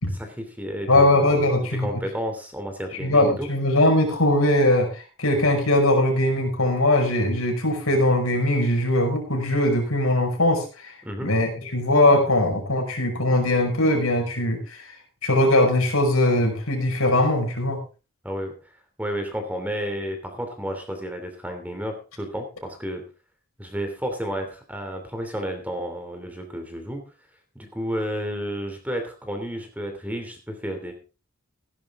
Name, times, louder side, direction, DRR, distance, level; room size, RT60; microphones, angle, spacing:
voice 1, 0.2-1.5 1.8-3.5 11.0-11.3 18.2-18.5 19.0-23.0 23.6-27.0 27.5-30.9, equal, 5° right, 5 dB, 2.8 m, -31 dB
voice 2, 0.9-1.9 3.0-10.9 11.2-14.8 15.2-17.8, left 1 dB, 85° left, 2 dB, 5.7 m, -20 dB
16.5 x 11.0 x 3.7 m, 0.33 s
head